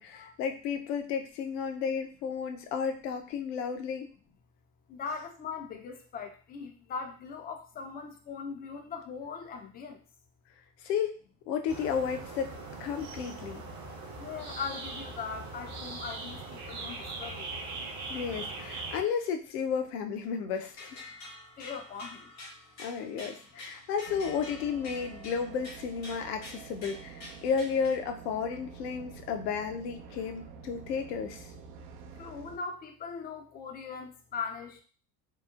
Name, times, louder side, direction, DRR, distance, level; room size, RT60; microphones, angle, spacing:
voice 1, 0.0-4.1 10.8-11.2 11.5-12.5 12.8-13.6 18.1-21.0 22.8-31.5, left 6 dB, 70° left, 5 dB, 0.6 m, -33 dB
voice 2, 4.9-10.0 14.2-17.6 21.6-22.3 32.2-34.8, left 5 dB, 20° left, 4 dB, 0.4 m, -40 dB
sound 1, 11.7-19.0, right 3 dB, 35° right, 0.7 m, -40 dB
sound 2, 20.5-27.9, left 2 dB, 90° left, 1.0 m, -48 dB
sound 3, 24.1-32.6, right 6 dB, 70° right, 0.6 m, -48 dB
3.0 x 2.0 x 2.3 m, 0.39 s
hypercardioid pair, 75°, 49 cm